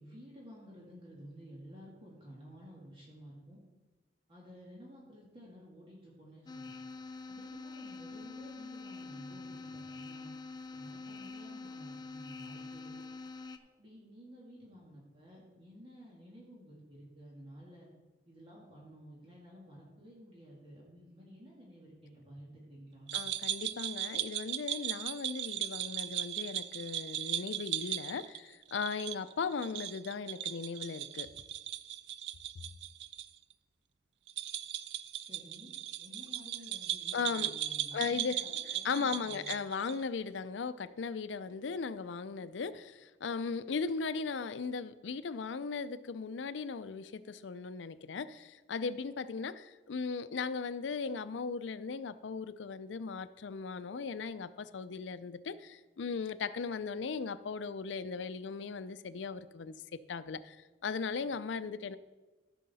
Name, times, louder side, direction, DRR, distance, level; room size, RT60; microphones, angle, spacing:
voice 1, 0.0-3.6 4.3-6.7 7.3-10.3 10.7-13.0 13.8-17.9 18.3-23.2 35.3-35.7 36.0-39.5, equal, 30° right, -4 dB, 1.9 m, -53 dB
sound 1, 6.5-13.6, left 3 dB, 20° left, 0.5 m, -46 dB
voice 2, 23.1-31.3 37.1-37.5 37.9-38.4 38.8-60.6 60.8-62.0, left 5 dB, 85° left, 14 dB, 0.5 m, -37 dB
sound 2, 23.1-33.3 33.5-33.6 34.3-40.0, right 12 dB, 70° right, 0.4 m, -38 dB
14.0 x 6.5 x 4.1 m, 1.2 s
head